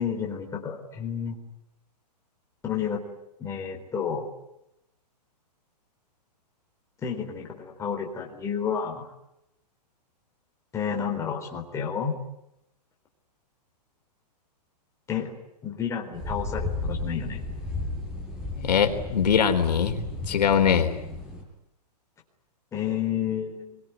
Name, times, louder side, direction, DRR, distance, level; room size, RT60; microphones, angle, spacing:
voice 1, 0.0-1.4 2.6-3.0 3.4-4.2 7.0-9.1 10.7-12.2 15.1-15.3 15.6-17.4 22.7-23.8, left 7 dB, 15° left, 1 dB, 4.1 m, -30 dB
sound 1, 16.1-21.4, left 2 dB, 5° right, 7.6 m, -34 dB
voice 2, 18.5-21.0, left 7 dB, 80° left, 6 dB, 4.0 m, -22 dB
27.0 x 23.5 x 9.3 m, 0.87 s
hypercardioid pair, 160°, 21 cm